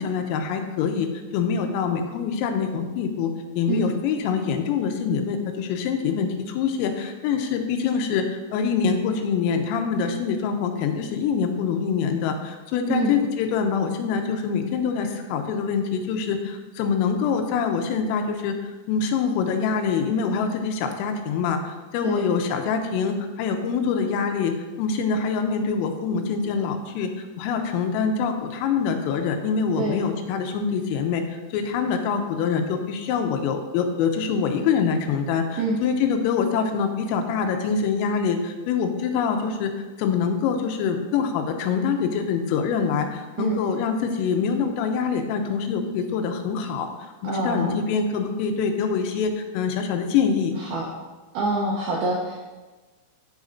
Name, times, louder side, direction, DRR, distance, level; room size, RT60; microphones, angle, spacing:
voice 1, 0.0-3.3 3.6-18.6 18.9-24.5 24.8-27.1 27.4-39.7 40.0-46.9 47.2-50.5, left 6 dB, 85° left, 5 dB, 3.4 m, -25 dB
voice 2, 47.2-47.7 50.6-50.9 51.3-52.4, right 2 dB, 90° right, -3 dB, 2.2 m, -25 dB
14.5 x 5.7 x 2.7 m, 1.2 s
omnidirectional pair, 5.9 m